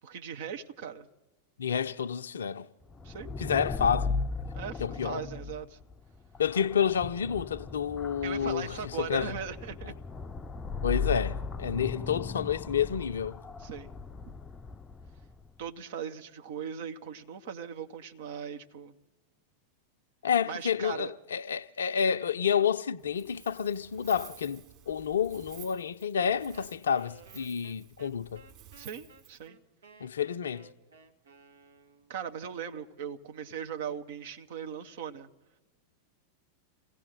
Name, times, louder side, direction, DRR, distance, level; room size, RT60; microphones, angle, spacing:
voice 1, 0.0-1.1 3.0-3.3 4.5-5.8 8.2-9.9 13.6-13.9 15.6-18.9 20.5-21.1 28.8-29.6 32.1-35.3, right 8 dB, 55° right, 1.2 m, -39 dB
voice 2, 1.6-2.7 3.4-4.2 4.8-5.2 6.4-9.4 9.8-9.9 10.8-13.4 20.2-28.4 30.0-30.7, left 7 dB, 65° left, 0.6 m, -29 dB
sound 1, 2.9-15.5, left 4 dB, 20° left, 0.6 m, -37 dB
Wind, 23.0-29.5, right 11 dB, 35° right, 4.2 m, -53 dB
Wind instrument woodwind instrument, 26.2-32.2, right 4 dB, 70° right, 1.6 m, -57 dB
28.0 x 16.5 x 5.8 m
figure-of-eight pair, 90°, 0 cm